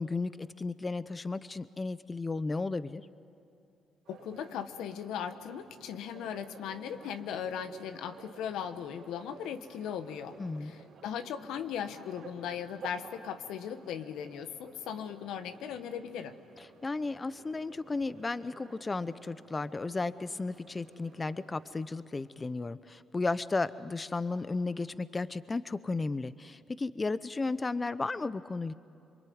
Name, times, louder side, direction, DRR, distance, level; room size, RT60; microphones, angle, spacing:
voice 1, 0.0-3.0 10.4-10.7 16.8-28.7, left 3 dB, 25° left, 15 dB, 0.6 m, -34 dB
sound 1, 4.0-21.8, right 5 dB, 75° right, 4.7 m, -53 dB
voice 2, 4.1-16.4, left 8 dB, 85° left, 9 dB, 1.2 m, -38 dB
27.0 x 23.5 x 9.5 m, 2.6 s
cardioid pair, 90°, 0 cm